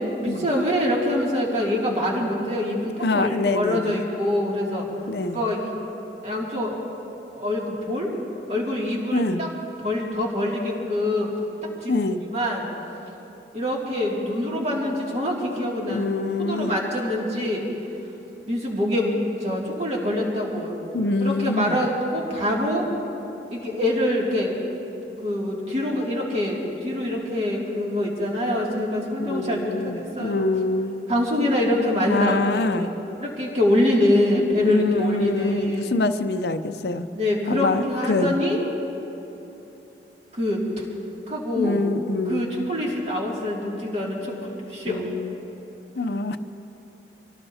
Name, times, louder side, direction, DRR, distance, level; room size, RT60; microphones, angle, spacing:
voice 1, 0.0-4.9 5.3-5.7 6.2-6.8 7.3-8.1 8.5-9.5 9.8-11.3 11.6-11.9 12.3-12.7 13.5-16.1 16.4-17.6 18.5-19.1 19.4-20.7 21.2-22.9 23.5-24.6 25.2-30.4 31.1-32.9 33.2-35.9 37.2-38.6 40.4-40.8 41.3-41.8 42.3-45.1, left 1 dB, 40° right, -3 dB, 2.5 m, -25 dB
voice 2, 3.0-4.0 5.1-5.4 9.1-9.4 11.9-12.2 15.9-16.8 20.9-21.8 29.2-31.1 32.1-32.9 34.6-37.1 37.5-38.3 41.6-42.7 44.9-45.4 46.0-46.4, left 2 dB, 70° left, 9 dB, 0.6 m, -25 dB
26.0 x 17.5 x 2.8 m, 3.0 s
head